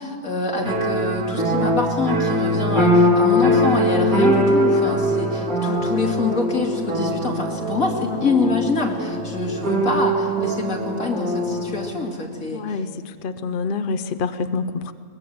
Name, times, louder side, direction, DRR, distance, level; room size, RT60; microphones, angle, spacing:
voice 1, 0.0-12.8, left 3 dB, 65° left, 0 dB, 3.2 m, -25 dB
sound 1, 0.6-11.9, equal, 70° right, 3.3 m, -21 dB
voice 2, 12.5-14.9, left 4 dB, 50° left, 10 dB, 0.7 m, -27 dB
22.0 x 21.0 x 7.8 m, 2.1 s
omnidirectional pair, 1.6 m